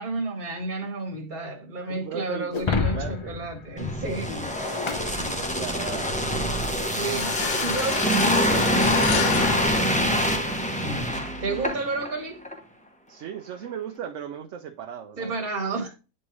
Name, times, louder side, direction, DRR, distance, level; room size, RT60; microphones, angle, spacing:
voice 1, 0.0-4.6 5.1-5.4 6.9-8.3 10.8-12.4 15.2-15.9, right 3 dB, 35° right, 1.6 m, -32 dB
voice 2, 1.9-3.4 5.3-6.2 8.8-9.4 11.5-11.6 13.1-15.4, right 8 dB, 65° right, 0.9 m, -37 dB
Shatter, 2.5-6.0, left 4 dB, 50° left, 0.3 m, -31 dB
sound 1, 3.8-12.1 12.4-12.6, equal, 10° left, 0.6 m, -25 dB
sound 2, 7.1-10.7, left 10 dB, 70° left, 0.8 m, -31 dB
8.9 x 3.6 x 3.0 m
omnidirectional pair, 1.4 m